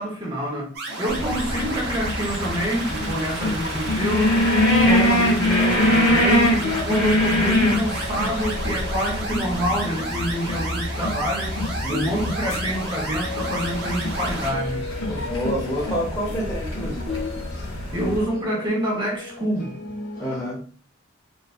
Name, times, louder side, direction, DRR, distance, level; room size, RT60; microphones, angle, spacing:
voice 1, 0.0-4.4 4.8-11.6 11.9-14.8 17.7-19.8, equal, 25° right, 0.6 m, -26 dB
sound 1, 0.7-14.5, right 2 dB, 55° right, 0.8 m, -32 dB
sound 2, 1.1-18.2, left 1 dB, 85° left, 0.7 m, -24 dB
sound 3, 3.6-20.5, left 4 dB, 50° left, 0.8 m, -37 dB
voice 2, 4.6-5.0 11.8-12.1 15.1-17.1 20.2-20.6, equal, 15° left, 0.8 m, -28 dB
2.6 x 2.3 x 2.4 m
head